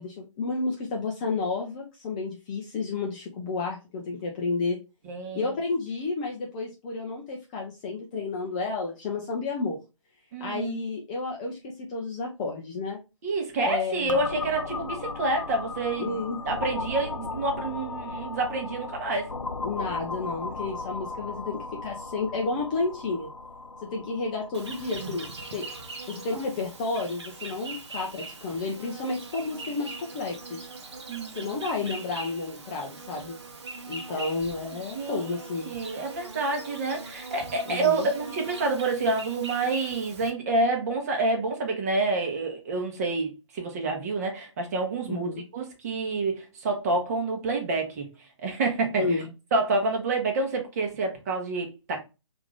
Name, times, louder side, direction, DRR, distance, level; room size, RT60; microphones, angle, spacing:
voice 1, 0.0-4.8 5.3-9.8 10.4-13.0 13.6-14.2 16.0-16.4 19.6-23.3 23.9-25.6 26.1-30.7 31.3-33.4 33.9-35.7 37.7-38.1 45.1-45.4 49.0-49.3, left 3 dB, 15° left, 0.4 m, -31 dB
voice 2, 5.0-5.5 10.3-10.8 13.2-19.3 31.1-31.5 34.1-34.2 34.9-35.4 35.6-48.1 48.4-49.0 49.5-52.0, right 3 dB, 30° right, 0.9 m, -28 dB
sound 1, 14.1-27.6, left 3 dB, 80° left, 0.5 m, -37 dB
Insect, 24.5-40.3, right 3 dB, 60° right, 0.8 m, -41 dB
3.5 x 2.5 x 3.1 m
figure-of-eight pair, 135°, 16 cm